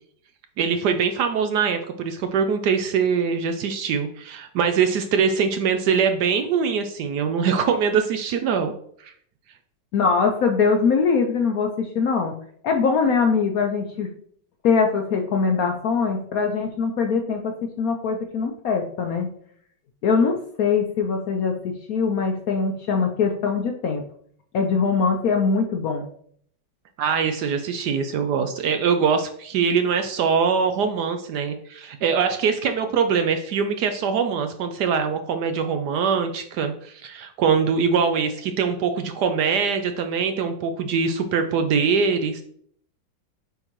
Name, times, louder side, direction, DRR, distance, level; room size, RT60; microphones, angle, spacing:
voice 1, 0.6-8.7 9.0-9.1 27.0-42.4, right 6 dB, 70° right, 7 dB, 1.0 m, -23 dB
voice 2, 9.9-12.3 12.6-14.1 14.6-19.3 20.0-24.0 24.5-26.1, left 5 dB, 65° left, 4 dB, 0.9 m, -22 dB
8.7 x 3.7 x 3.0 m, 0.62 s
omnidirectional pair, 2.1 m